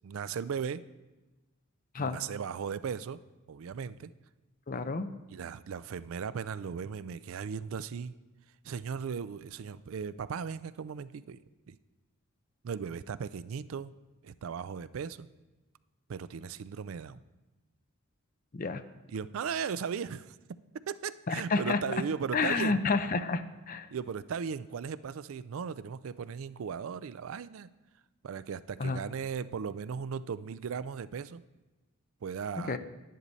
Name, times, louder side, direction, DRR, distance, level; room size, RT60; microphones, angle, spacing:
voice 1, 0.0-0.8 2.0-3.2 3.5-4.1 5.3-8.1 8.6-11.4 11.7-11.8 12.6-13.9 14.2-15.3 16.1-17.2 19.1-20.4 20.7-22.8 23.9-27.7 28.2-31.4 32.2-32.8, right 6 dB, 70° right, 16 dB, 0.4 m, -37 dB
voice 2, 4.7-5.1 18.5-18.8 21.3-21.8 22.3-23.9 28.8-29.0 32.7-32.8, left 4 dB, 40° left, 10 dB, 0.5 m, -29 dB
10.5 x 9.7 x 4.0 m, 1.1 s
head